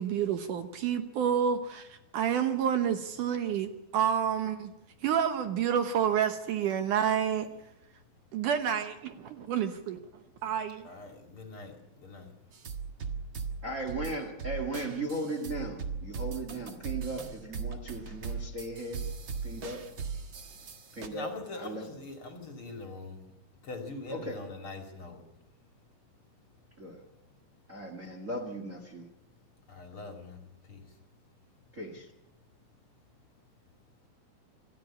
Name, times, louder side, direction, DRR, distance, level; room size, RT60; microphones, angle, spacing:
voice 1, 0.0-4.7 5.0-7.5 8.3-10.0 10.4-10.9, right 8 dB, 70° right, 8 dB, 2.3 m, -29 dB
voice 2, 10.8-12.3 21.1-23.2 23.6-25.2 29.7-30.4 30.7-30.9, left 3 dB, 40° left, 3 dB, 2.9 m, -43 dB
sound 1, 12.5-21.1, right 5 dB, 45° right, 1.7 m, -39 dB
voice 3, 13.6-19.0 19.4-19.9 20.9-21.9 24.1-24.4 26.8-27.0 27.7-29.1 31.7-32.1, right 2 dB, 30° right, 3 dB, 1.8 m, -37 dB
27.0 x 13.5 x 8.6 m, 0.92 s
omnidirectional pair, 4.2 m